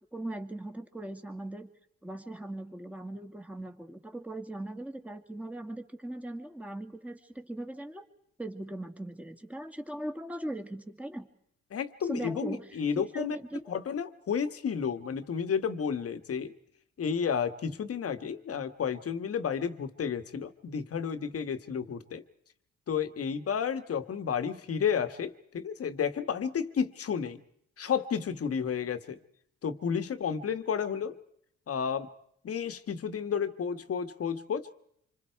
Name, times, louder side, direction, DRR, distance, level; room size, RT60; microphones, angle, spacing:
voice 1, 0.1-1.7 2.0-8.0 8.4-11.3 12.0-12.8 13.1-13.8, right 1 dB, 5° right, 6 dB, 2.4 m, -39 dB
voice 2, 11.7-13.4 13.7-16.5 17.0-22.2 22.9-27.4 27.8-29.2 29.6-31.2 31.7-32.1 32.4-34.7, left 7 dB, 50° left, 10 dB, 1.6 m, -31 dB
27.0 x 25.5 x 4.7 m, 0.72 s
cardioid pair, 90°, 30 cm